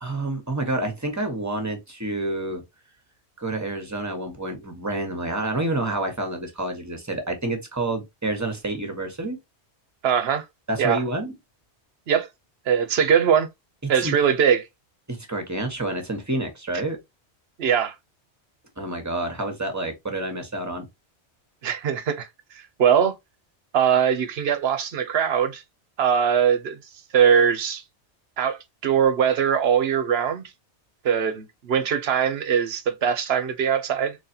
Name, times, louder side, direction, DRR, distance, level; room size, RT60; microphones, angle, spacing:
voice 1, 0.0-2.6 3.4-9.4 10.7-11.3 13.8-14.1 15.1-17.0 18.8-20.9, right 2 dB, 15° right, 1.1 m, -28 dB
voice 2, 10.0-10.5 10.8-11.0 12.1-12.3 12.7-13.5 13.9-14.6 17.6-17.9 21.6-22.3 22.8-23.1 23.7-25.6 26.0-26.8 27.1-27.8 28.4-30.5 31.0-34.2, right 8 dB, 65° right, 1.0 m, -21 dB
4.0 x 3.3 x 2.8 m
omnidirectional pair, 1.2 m